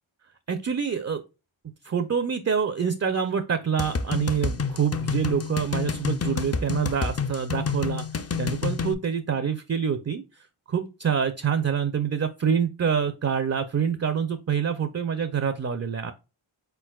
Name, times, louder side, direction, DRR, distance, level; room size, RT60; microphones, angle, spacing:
voice 1, 0.5-1.2 1.8-16.1, right 7 dB, 35° right, 10 dB, 0.4 m, -26 dB
sound 1, 3.8-8.9, left 5 dB, 35° left, 0.4 m, -29 dB
4.6 x 4.0 x 2.3 m, 0.29 s
wide cardioid pair, 60°, 49 cm